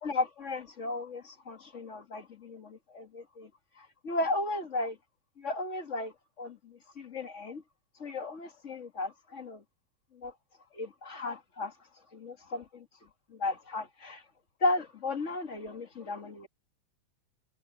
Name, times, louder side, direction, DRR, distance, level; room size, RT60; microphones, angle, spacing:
voice 1, 0.0-3.5 3.8-5.0 5.4-7.6 8.0-9.6 10.1-10.3 10.7-11.7 12.1-12.8 13.3-14.2 14.6-16.5, left 2 dB, 30° left, 1.4 m, -35 dB
omnidirectional pair, 3.4 m